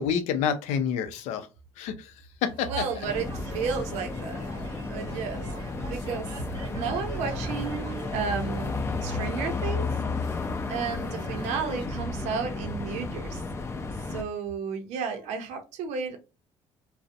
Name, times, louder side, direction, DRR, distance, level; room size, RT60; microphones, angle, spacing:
voice 1, 0.0-1.5 1.8-2.1 2.4-2.7, left 7 dB, 85° left, 9 dB, 0.4 m, -28 dB
sound 1, 2.5-11.9, right 5 dB, 40° right, 0.8 m, -46 dB
voice 2, 2.7-4.4 4.9-5.5 5.8-6.3 6.7-10.4 10.7-13.4 14.1-16.2, right 6 dB, 80° right, 5 dB, 0.5 m, -33 dB
sound 2, 3.0-14.2, left 3 dB, 25° left, 0.3 m, -33 dB
2.4 x 2.0 x 2.6 m, 0.29 s
cardioid pair, 110°, 12 cm